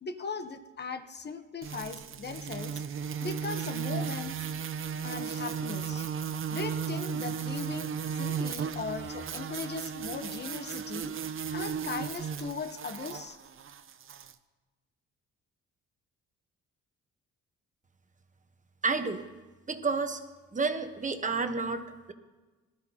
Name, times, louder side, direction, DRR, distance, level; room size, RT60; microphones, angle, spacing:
voice 1, 0.0-2.8 3.2-4.5 5.0-6.1 6.5-11.1 11.5-13.4, left 5 dB, 35° left, 9 dB, 1.1 m, -38 dB
sound 1, 1.6-14.3, right 7 dB, 45° right, 0.7 m, -35 dB
voice 2, 18.8-19.2 19.7-20.2 20.5-22.1, right 4 dB, 25° right, 7 dB, 1.1 m, -30 dB
18.5 x 13.0 x 2.9 m, 1.2 s
cardioid pair, 90°, 30 cm